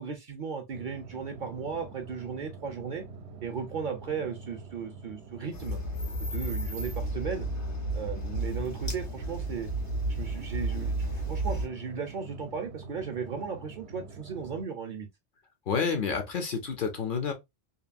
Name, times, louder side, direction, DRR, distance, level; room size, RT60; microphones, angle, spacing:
voice 1, 0.0-3.0 3.4-5.8 6.2-7.5 7.9-9.7 10.1-15.1, right 6 dB, 60° right, 0.6 m, -36 dB
sound 1, 0.7-14.7, right 3 dB, 75° right, 0.8 m, -46 dB
sound 2, 5.5-11.7, right 1 dB, 85° left, 1.3 m, -32 dB
voice 2, 15.7-17.3, left 5 dB, 60° left, 0.7 m, -29 dB
2.8 x 2.6 x 2.4 m
omnidirectional pair, 1.1 m